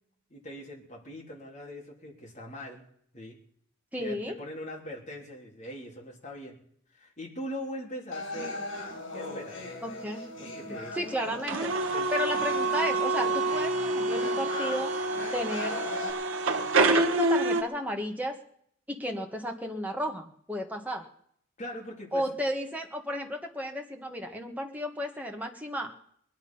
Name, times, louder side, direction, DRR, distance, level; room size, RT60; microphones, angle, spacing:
voice 1, 0.3-2.8 3.1-3.4 4.0-6.6 6.9-8.6 9.1-9.6 10.4-11.2 11.9-12.4 21.6-22.5, equal, 35° left, -1 dB, 3.4 m, -41 dB
voice 2, 3.9-4.4 9.8-10.3 10.7-11.7 12.1-14.9 15.3-15.8 16.9-18.4 18.9-21.1 22.1-25.9, equal, 10° right, 2 dB, 1.6 m, -33 dB
sound 1, 8.1-16.1, left 2 dB, 80° left, 5.2 m, -39 dB
sound 2, 11.5-17.6, right 3 dB, 85° right, 1.3 m, -27 dB
21.5 x 10.5 x 5.7 m, 0.66 s
head